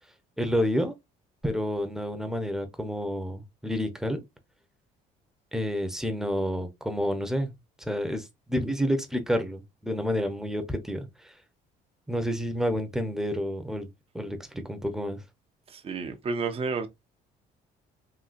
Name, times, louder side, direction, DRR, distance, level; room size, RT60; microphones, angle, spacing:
voice 1, 0.4-0.9 1.4-4.2 5.5-7.5 7.8-11.3 12.1-13.9 14.1-15.2, equal, 5° right, 0.8 m, -29 dB
voice 2, 15.7-16.9, right 4 dB, 35° right, 0.7 m, -31 dB
3.9 x 2.6 x 2.5 m
cardioid pair, 110°, 17 cm